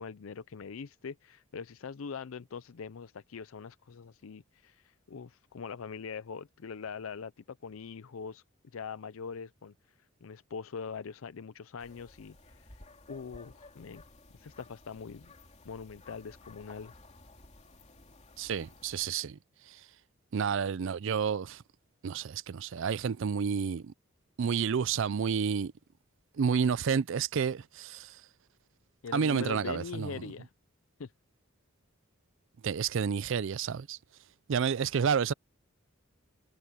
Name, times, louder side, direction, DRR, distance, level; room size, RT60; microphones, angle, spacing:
voice 1, 0.0-8.4 8.7-9.7 10.2-12.8 13.1-14.0 14.3-15.3 15.6-16.9 29.0-30.5 31.0-31.1, left 5 dB, 75° left, 0.5 m, -42 dB
sound 1, 11.8-19.1, left 2 dB, 35° left, 3.0 m, -55 dB
voice 2, 18.4-19.4 20.3-21.6 22.0-23.9 24.4-25.7 26.4-28.1 29.1-30.1 32.6-34.0 34.5-35.3, right 6 dB, 65° right, 0.4 m, -30 dB
head